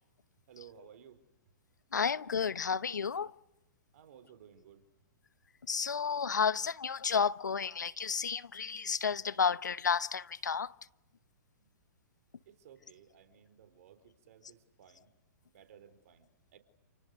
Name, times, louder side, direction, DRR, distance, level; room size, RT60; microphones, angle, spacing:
voice 1, 0.5-1.2 3.9-4.8 11.6-11.7 12.5-15.1 15.4-16.6, right 8 dB, 60° right, 4.2 m, -57 dB
voice 2, 1.9-3.3 5.7-10.7, left 6 dB, 85° left, 0.9 m, -31 dB
29.5 x 29.5 x 6.6 m
hypercardioid pair, 125°, 9 cm